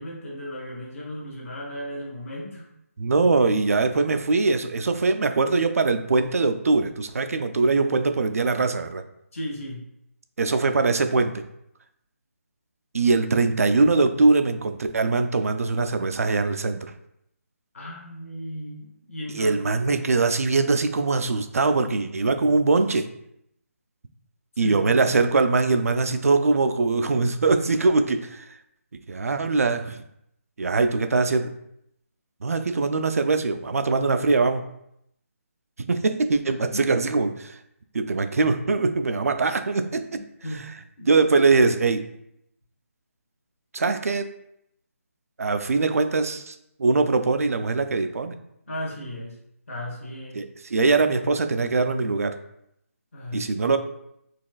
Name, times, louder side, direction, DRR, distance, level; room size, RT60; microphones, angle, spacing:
voice 1, 0.0-2.7 9.3-9.8 13.2-13.3 17.7-19.6 24.5-25.2 36.7-36.8 40.1-40.7 41.0-41.1 48.7-49.4 49.7-50.4 53.1-53.8, equal, 65° left, -3 dB, 1.2 m, -35 dB
voice 2, 3.0-9.0 10.4-11.3 12.9-16.9 19.3-23.1 24.6-28.5 29.1-30.0 30.6-31.5 32.4-34.7 35.8-37.6 37.9-40.1 41.1-42.0 43.7-44.3 45.4-48.3 50.3-52.3 53.3-53.8, right 3 dB, 75° right, 8 dB, 0.4 m, -22 dB
4.1 x 2.4 x 2.3 m, 0.77 s
figure-of-eight pair, 165°, 8 cm